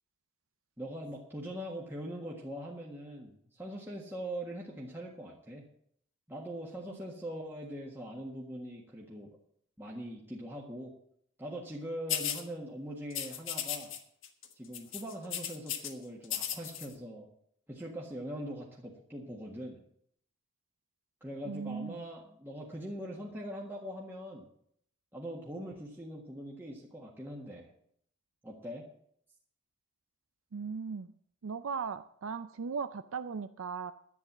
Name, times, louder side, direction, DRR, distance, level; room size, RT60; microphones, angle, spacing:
voice 1, 0.8-5.6 6.3-9.3 9.8-10.9 11.4-13.9 14.5-17.3 17.7-19.8 21.2-24.5 25.1-27.7 28.4-28.8, equal, 10° right, -3 dB, 1.6 m, -42 dB
sound 1, 12.1-12.4 13.1-14.0 14.2-14.5 14.7-15.9 16.2-16.9, left 10 dB, 70° left, 1.4 m, -35 dB
voice 2, 21.5-22.0 30.5-31.1 31.4-33.9, right 5 dB, 80° right, 10 dB, 0.5 m, -37 dB
11.0 x 9.1 x 7.3 m, 0.66 s
head